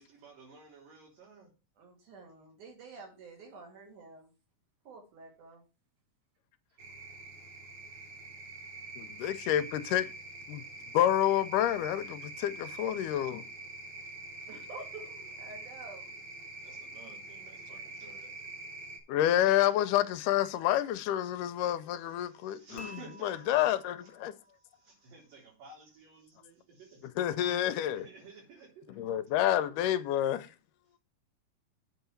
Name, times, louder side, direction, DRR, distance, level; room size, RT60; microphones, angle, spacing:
voice 1, 0.0-1.5 8.2-8.3 16.6-18.3 21.9-24.1 24.7-27.1 27.9-29.0, right 2 dB, 90° right, 5.3 m, -54 dB
voice 2, 1.8-4.3 4.9-5.6 14.5-16.1, right 3 dB, 70° right, 4.0 m, -49 dB
sound 1, 6.8-19.0, right 2 dB, 45° right, 2.4 m, -45 dB
voice 3, 9.0-10.1 10.5-10.6 10.9-13.4 19.1-23.0 23.2-24.3 27.2-28.1 29.0-30.5, left 12 dB, 80° left, 2.1 m, -28 dB
Dishes pots and pans / Chink clink, 22.8-24.9, right 1 dB, 40° left, 1.4 m, -52 dB
7.9 x 4.6 x 7.1 m
omnidirectional pair, 3.8 m